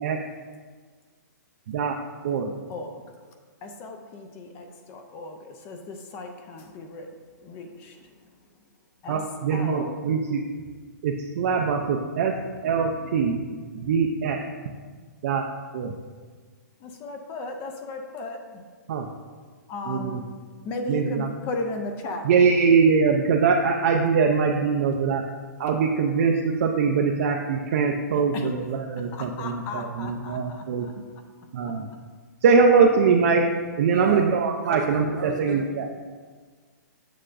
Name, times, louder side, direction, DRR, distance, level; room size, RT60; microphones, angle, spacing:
voice 1, 1.7-2.0 2.2-2.6 9.1-10.4 11.0-12.4 12.6-13.4 13.7-14.4 15.2-15.4 15.7-15.9 18.9-19.1 19.9-20.2 20.9-21.3 22.2-25.2 25.6-30.9 31.5-31.9 32.4-33.5 33.8-35.9, right 5 dB, 45° right, 1 dB, 0.4 m, -22 dB
voice 2, 2.7-3.0 3.6-7.1 7.4-8.3 9.0-9.2 9.5-10.0 16.8-18.6 19.7-20.3 20.6-22.3 28.1-28.5 29.0-30.9, left 2 dB, 20° left, 5 dB, 0.4 m, -36 dB
voice 3, 33.9-34.2 34.6-35.7, right 3 dB, 75° right, 2 dB, 1.2 m, -32 dB
6.7 x 6.2 x 2.5 m, 1.5 s
hypercardioid pair, 155°, 10 cm